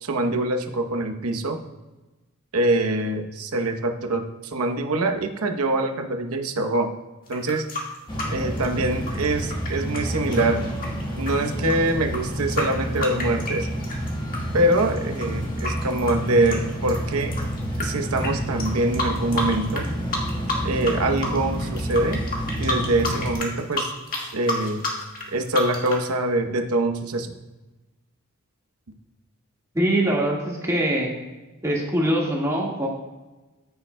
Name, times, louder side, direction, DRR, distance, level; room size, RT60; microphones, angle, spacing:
voice 1, 0.0-1.6 2.5-6.9 7.3-7.6 8.3-10.6 11.1-13.7 14.5-17.4 17.8-19.8 20.6-22.2 22.6-23.9 24.3-24.8 25.3-27.3, right 2 dB, 85° right, 5 dB, 0.9 m, -24 dB
sound 1, 7.3-14.4 14.7-17.8 18.2-18.3 18.6-19.9 20.1-20.9 21.2-26.1, left 2 dB, 40° left, 1.7 m, -30 dB
sound 2, 8.1-23.3, equal, 20° left, 1.3 m, -29 dB
voice 2, 29.7-31.1 31.6-32.9, right 1 dB, 15° right, -3 dB, 1.6 m, -23 dB
14.0 x 6.8 x 2.2 m, 1.1 s
head